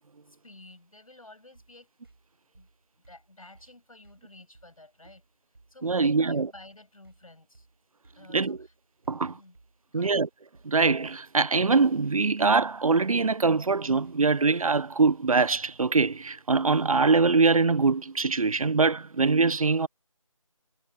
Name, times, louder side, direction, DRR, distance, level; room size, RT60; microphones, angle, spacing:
voice 1, 0.2-1.9 2.5-2.7 3.1-7.7 8.1-8.7 9.2-9.6 9.9-10.2, left 2 dB, 75° left, 6.7 m, -52 dB
sound 1, 1.5-17.4, right 3 dB, 45° right, 6.3 m, -60 dB
voice 2, 5.8-6.5 8.3-8.6 9.1-9.4 9.9-10.3 10.6-19.9, right 4 dB, 75° right, 0.6 m, -23 dB
figure-of-eight pair, 175°, 18 cm